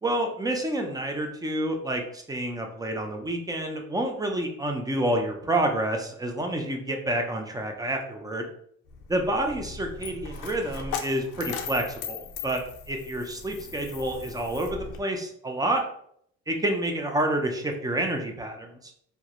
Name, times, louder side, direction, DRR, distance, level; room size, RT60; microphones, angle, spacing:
voice 1, 0.0-8.5 9.1-15.8 16.5-18.9, right 1 dB, 15° right, 3 dB, 0.4 m, -28 dB
Coin (dropping), 8.9-15.0, left 6 dB, 90° left, 0.5 m, -38 dB
2.2 x 2.0 x 2.8 m, 0.67 s
cardioid pair, 90°, 30 cm